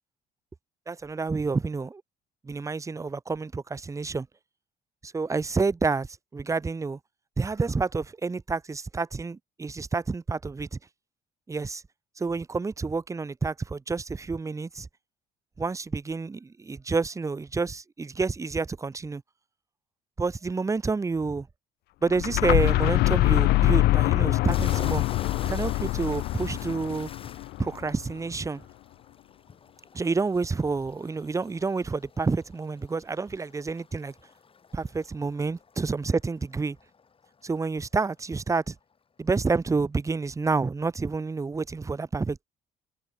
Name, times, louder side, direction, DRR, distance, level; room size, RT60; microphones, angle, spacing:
voice 1, 0.9-2.0 2.4-4.3 5.0-6.1 6.3-7.0 7.4-10.8 11.5-11.8 12.2-14.9 15.6-19.2 20.2-21.5 22.0-25.0 25.4-27.1 27.6-28.6 29.9-34.1 34.7-36.8 37.4-38.7 39.2-42.4, right 4 dB, 20° right, 0.9 m, -29 dB
sound 1, 22.1-27.9, left 18 dB, 70° left, 0.4 m, -24 dB
sound 2, 24.4-37.8, left 5 dB, 30° left, 5.9 m, -48 dB
cardioid pair, 110°, 17 cm